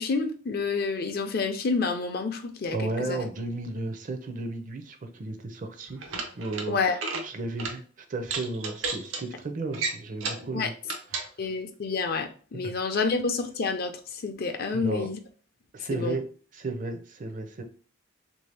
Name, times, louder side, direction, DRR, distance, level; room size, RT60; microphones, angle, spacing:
voice 1, 0.0-3.2 6.7-7.0 10.5-10.7 11.4-15.2 15.9-16.2, left 4 dB, 50° left, 7 dB, 0.5 m, -29 dB
voice 2, 2.7-6.0 6.4-7.0 7.2-10.7 11.1-11.3 12.5-13.0 14.7-15.1 15.7-16.3 16.5-17.6, right 2 dB, 40° right, 6 dB, 0.5 m, -34 dB
sound 1, 5.9-6.7 6.9-7.3 7.6-7.8 8.2-9.2 9.7-10.5 10.8-11.3, right 4 dB, 90° right, 0.7 m, -32 dB
3.2 x 2.7 x 3.3 m, 0.40 s
head